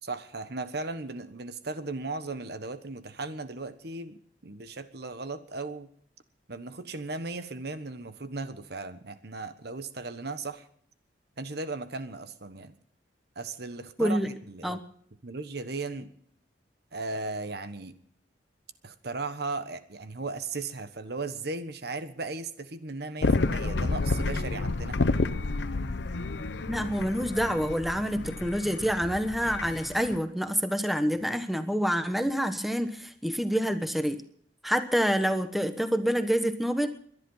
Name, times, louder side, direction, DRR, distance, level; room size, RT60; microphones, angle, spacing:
voice 1, 0.0-5.9 6.5-10.7 11.4-12.7 13.3-14.2 14.5-14.8 15.2-16.1 16.9-17.9 18.8-25.2, right 3 dB, 60° right, 11 dB, 1.2 m, -36 dB
voice 2, 14.0-14.3 14.6-14.8 26.7-34.2 34.6-36.9, equal, ahead, 8 dB, 1.1 m, -27 dB
sound 1, 23.2-30.2, left 3 dB, 70° left, 0.7 m, -30 dB
22.0 x 11.0 x 5.6 m, 0.62 s
head